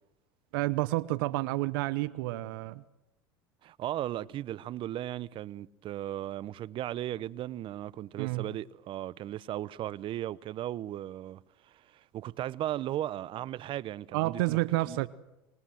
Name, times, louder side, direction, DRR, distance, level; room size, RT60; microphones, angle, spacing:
voice 1, 0.5-2.8 8.2-8.5 14.1-15.1, right 19 dB, 75° right, 0.9 m, -29 dB
voice 2, 3.6-14.6 14.8-15.1, right 13 dB, 45° right, 0.9 m, -36 dB
25.0 x 22.0 x 7.8 m
hypercardioid pair, 90°, 12 cm